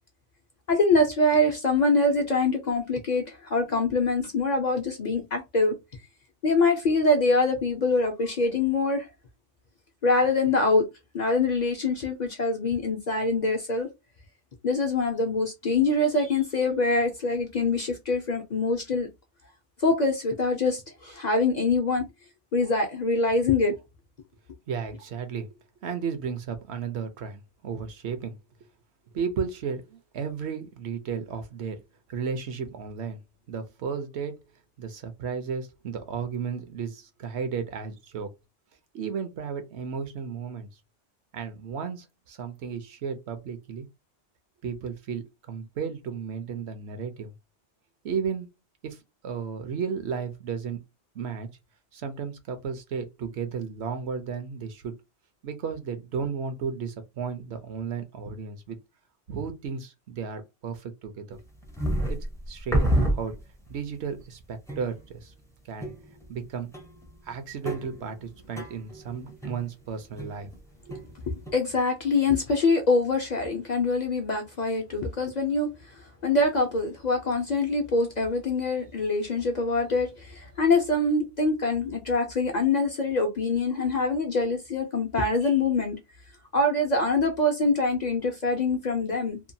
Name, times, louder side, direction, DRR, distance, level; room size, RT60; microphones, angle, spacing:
voice 1, 0.7-5.8 6.4-9.1 10.0-10.9 11.1-13.9 14.6-19.1 19.8-22.1 22.5-23.8 71.3-75.7 76.2-86.0 86.5-89.4, left 3 dB, 50° left, 0.6 m, -24 dB
voice 2, 24.7-25.5 25.8-28.4 29.1-31.8 32.1-33.2 33.5-34.4 34.8-38.3 38.9-40.7 41.3-43.9 44.6-47.4 48.0-48.5 48.8-49.0 49.2-50.8 51.1-51.5 51.9-55.0 55.4-58.8 59.3-61.4 62.1-63.4 63.7-65.3 65.6-65.9 66.3-66.7 67.2-70.5 70.8-71.0, right 6 dB, 70° right, 0.9 m, -34 dB
sound 1, 61.3-63.8 64.2-64.3 64.7-65.2 65.8-66.5 66.7-70.6 70.9-71.5, right 1 dB, 5° left, 0.4 m, -30 dB
2.8 x 2.2 x 2.6 m
omnidirectional pair, 1.2 m